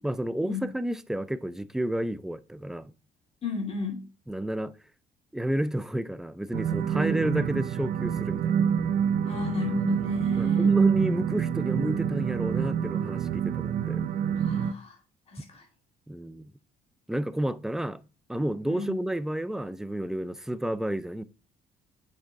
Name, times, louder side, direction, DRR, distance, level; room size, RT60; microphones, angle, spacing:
voice 1, 0.0-2.9 4.3-4.7 5.3-8.7 10.4-14.1 16.1-16.5 17.1-18.0 18.3-21.2, right 1 dB, 5° right, 0.3 m, -30 dB
voice 2, 3.4-4.0 9.2-10.7 14.4-15.0 15.3-15.6 18.7-18.9, left 4 dB, 35° left, 2.4 m, -33 dB
sound 1, 6.5-14.7, right 8 dB, 60° right, 0.5 m, -27 dB
6.5 x 4.4 x 3.5 m
cardioid pair, 110°, 17 cm